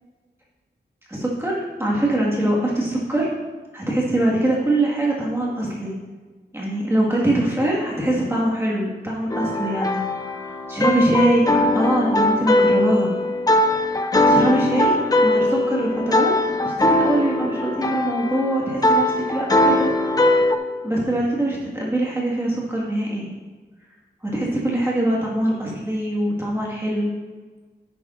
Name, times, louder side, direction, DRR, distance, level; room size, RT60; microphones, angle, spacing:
voice 1, 1.1-3.3 3.7-6.0 6.5-10.0 10.7-13.1 13.9-14.9 15.2-16.3 16.6-19.9 20.8-23.3 24.2-27.1, right 1 dB, 15° right, -5 dB, 1.7 m, -23 dB
sound 1, 9.3-20.6, left 1 dB, 20° left, 0.6 m, -20 dB
10.5 x 8.2 x 2.5 m, 1.4 s
wide cardioid pair, 100°, 18 cm